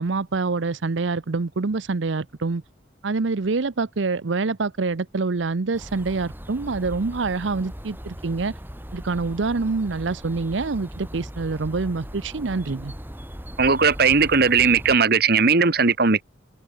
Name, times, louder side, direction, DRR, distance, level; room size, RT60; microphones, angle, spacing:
voice 1, 0.0-2.6 3.0-8.5 8.9-12.9, right 3 dB, 80° right, 0.7 m, -26 dB
sound 1, 5.7-15.0, equal, 10° right, 4.9 m, -39 dB
voice 2, 13.6-16.2, right 5 dB, 55° right, 1.5 m, -18 dB
head